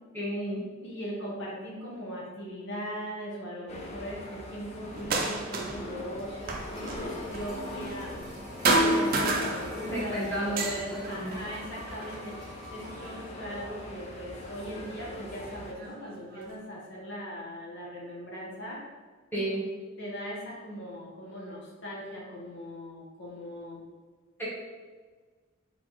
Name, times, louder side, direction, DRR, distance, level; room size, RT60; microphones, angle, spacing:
voice 1, 0.1-0.6 9.9-10.6 11.1-11.3 19.3-19.6 24.4-24.5, right 1 dB, 10° left, -9 dB, 1.4 m, -31 dB
voice 2, 0.8-8.1 8.7-12.4 12.7-18.8 20.0-23.8, equal, 60° left, -4 dB, 0.8 m, -39 dB
sound 1, 3.7-15.7, left 1 dB, 35° left, 0.5 m, -41 dB
sound 2, 4.9-5.9 6.2-8.4 8.6-10.0 10.4-12.3 12.9-13.8 14.8-14.9 15.5-16.5, right 2 dB, 45° right, 0.5 m, -30 dB
sound 3, 6.2-13.3 13.6-13.7, left 1 dB, 20° right, 1.1 m, -47 dB
4.2 x 3.8 x 3.0 m, 1.4 s
head